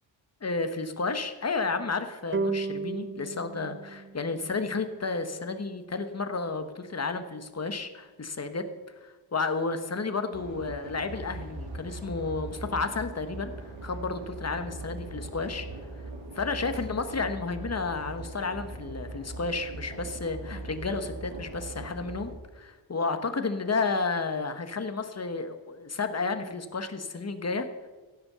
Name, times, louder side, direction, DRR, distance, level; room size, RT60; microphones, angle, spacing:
voice 1, 0.4-8.6 9.0-13.5 13.8-15.7 16.3-27.9, left 4 dB, 35° left, 8 dB, 1.1 m, -32 dB
sound 1, 2.3-5.6, right 4 dB, 30° right, 0.4 m, -35 dB
sound 2, 10.3-22.3, right 2 dB, 70° right, 2.8 m, -40 dB
16.0 x 7.4 x 6.7 m, 1.3 s
wide cardioid pair, 135°, 46 cm